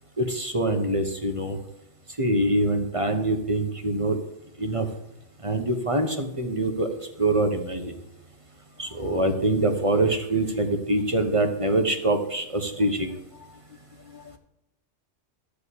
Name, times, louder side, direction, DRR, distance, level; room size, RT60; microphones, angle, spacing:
voice 1, 0.2-1.6 2.2-4.2 4.6-4.9 5.4-6.9 7.2-7.9 8.8-13.1, right 2 dB, 30° right, 1.0 m, -24 dB
voice 2, 8.9-9.4 12.8-14.4, left 9 dB, 55° left, 0.6 m, -51 dB
12.5 x 5.0 x 8.3 m
omnidirectional pair, 1.3 m